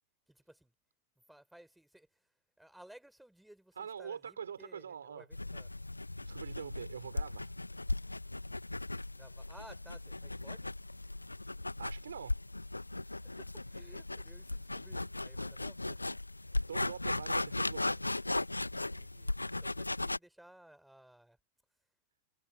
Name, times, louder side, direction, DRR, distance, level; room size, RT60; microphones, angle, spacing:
voice 1, 0.3-0.7 1.3-2.1 2.6-5.7 9.1-10.7 13.2-16.1 19.0-19.3 19.6-21.4, right 1 dB, 5° right, 5.6 m, -57 dB
voice 2, 3.8-5.3 6.2-7.5 11.8-12.4 16.7-18.0, right 7 dB, 70° right, 5.2 m, -44 dB
sound 1, 5.3-20.2, left 2 dB, 85° left, 1.5 m, -37 dB
figure-of-eight pair, 90°, 0 cm